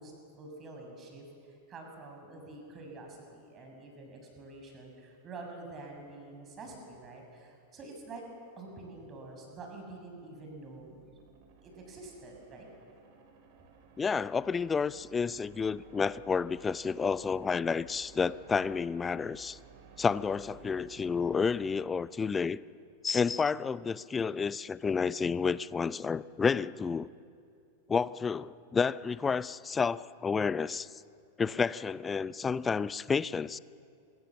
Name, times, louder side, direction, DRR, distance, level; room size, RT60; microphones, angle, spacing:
voice 1, 0.0-8.2 8.6-10.9 11.6-12.7, right 2 dB, 25° right, 7.1 m, -47 dB
sound 1, 9.9-22.7, right 7 dB, 45° right, 4.3 m, -57 dB
voice 2, 14.0-19.6 20.0-22.6 23.0-27.1 27.9-30.9 31.4-33.6, left 5 dB, 15° left, 0.6 m, -30 dB
26.0 x 23.5 x 7.3 m
figure-of-eight pair, 90°, 0 cm